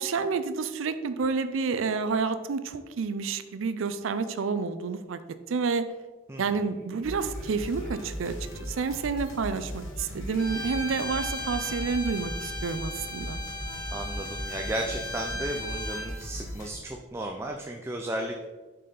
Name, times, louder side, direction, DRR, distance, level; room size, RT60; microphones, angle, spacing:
voice 1, 0.0-5.2 5.5-5.9 6.4-8.3 8.6-13.4, right 5 dB, 80° right, 11 dB, 0.4 m, -29 dB
voice 2, 6.3-6.6 13.9-18.4, right 1 dB, 15° right, 2 dB, 0.3 m, -34 dB
sound 1, 6.5-9.1 10.1-12.7, equal, 35° right, 1.9 m, -51 dB
sound 2, 7.0-16.7, equal, 90° left, 1.1 m, -38 dB
Bowed string instrument, 10.4-16.1, left 1 dB, 5° left, 1.3 m, -37 dB
6.3 x 4.3 x 3.9 m, 1.3 s
head